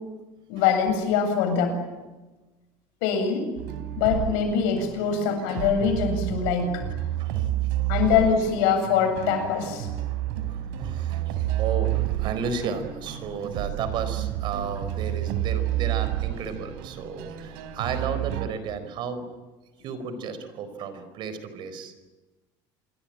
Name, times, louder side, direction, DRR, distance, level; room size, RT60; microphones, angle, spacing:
voice 1, 0.5-1.8 3.0-3.5 4.0-6.8 7.9-9.9, left 6 dB, 85° left, 6 dB, 7.8 m, -23 dB
sound 1, 3.6-18.5, right 13 dB, 85° right, 3.8 m, -30 dB
voice 2, 10.5-19.3 19.8-21.9, right 6 dB, 50° right, 11 dB, 4.7 m, -33 dB
27.5 x 23.0 x 8.9 m, 1.1 s
cardioid pair, 150°, 11 cm